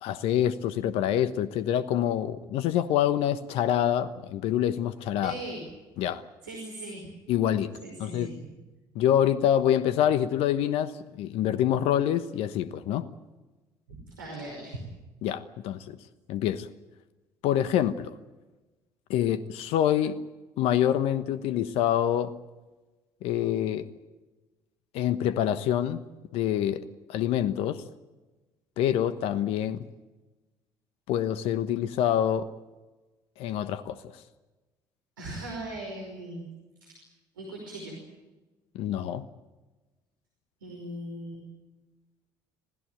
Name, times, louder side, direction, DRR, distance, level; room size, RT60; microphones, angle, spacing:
voice 1, 0.0-5.3 6.0-6.2 7.3-7.7 8.0-8.3 8.9-13.0 15.2-15.9 16.3-16.7 17.4-18.1 19.1-20.2 20.6-22.3 23.2-23.9 24.9-26.0 26.3-26.8 27.1-27.8 28.8-29.8 31.1-32.5 33.4-34.0 38.7-39.2, left 10 dB, 65° left, 13 dB, 1.1 m, -26 dB
voice 2, 5.2-5.6 6.4-7.0 7.8-8.3 13.9-14.8 35.2-36.4 36.8-37.0 37.4-38.0 40.6-41.4, right 1 dB, 90° right, 1 dB, 5.3 m, -39 dB
26.5 x 17.0 x 9.2 m, 1.2 s
hypercardioid pair, 55°, 11 cm